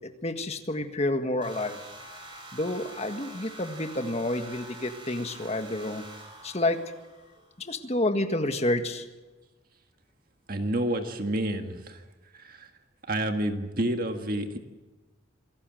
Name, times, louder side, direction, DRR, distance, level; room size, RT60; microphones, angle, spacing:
voice 1, 0.2-1.8 2.5-6.0 6.4-6.8 7.6-9.0, left 1 dB, 30° left, 6 dB, 1.7 m, -29 dB
sound 1, 1.4-7.6, right 2 dB, 25° right, 6.3 m, -46 dB
voice 2, 10.5-12.0 12.3-12.7 13.1-14.6, right 1 dB, 45° right, 5 dB, 1.8 m, -29 dB
26.5 x 17.0 x 7.8 m, 1.2 s
head